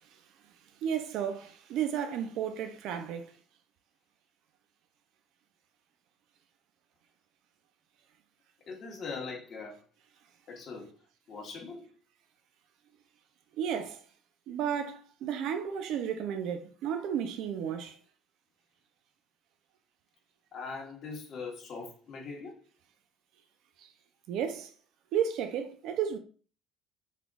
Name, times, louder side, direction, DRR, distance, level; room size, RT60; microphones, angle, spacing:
voice 1, 0.8-3.3 13.6-14.0 14.5-18.0 24.3-24.7 25.1-26.2, right 8 dB, 70° right, 0.5 m, -33 dB
voice 2, 8.7-9.8 10.5-10.9 11.3-11.9 20.5-22.6, left 4 dB, 45° left, 1.2 m, -41 dB
3.6 x 3.4 x 2.4 m
cardioid pair, 110°, 0 cm